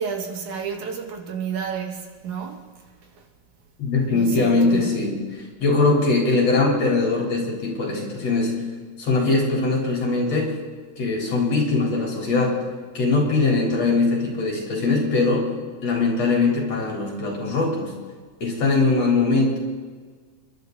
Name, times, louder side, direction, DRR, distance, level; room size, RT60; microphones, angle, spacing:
voice 1, 0.0-2.6 3.0-3.2 4.1-4.9, right 6 dB, 80° right, 3.4 m, -31 dB
voice 2, 3.8-8.7 9.0-10.5 11.0-12.6 12.9-15.5 15.8-17.9 18.4-19.6, left 3 dB, 60° left, 5.0 m, -21 dB
29.0 x 12.0 x 4.0 m
omnidirectional pair, 3.4 m